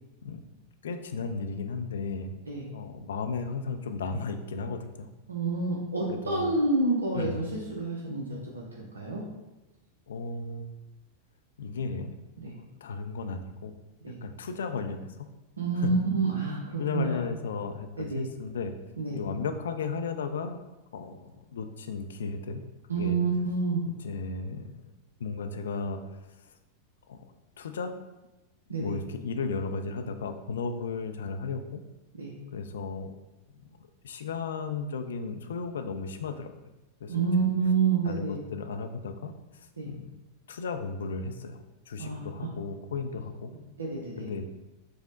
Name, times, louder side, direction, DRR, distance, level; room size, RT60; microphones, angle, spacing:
voice 1, 0.8-2.4 2.7-5.1 6.1-6.5 7.1-7.5 10.1-10.8 11.6-12.1 12.4-13.7 14.2-15.3 15.8-15.9 16.8-18.7 19.1-20.6 20.9-22.7 22.9-23.2 23.9-24.8 25.2-26.0 27.1-27.3 27.6-28.0 28.8-31.8 32.5-33.1 33.6-36.5 37.0-37.2 38.1-40.1 40.5-43.5 44.2-44.5, left 4 dB, 65° left, 7 dB, 0.3 m, -35 dB
voice 2, 5.3-9.2 12.4-12.5 14.0-14.2 15.6-17.2 18.0-18.3 19.0-19.2 22.9-23.8 28.7-29.0 32.2-32.3 37.1-38.4 39.8-39.9 42.0-42.5 43.8-44.3, right 4 dB, 75° right, -3 dB, 0.5 m, -28 dB
5.0 x 2.0 x 3.7 m, 1.1 s
figure-of-eight pair, 90°, 0 cm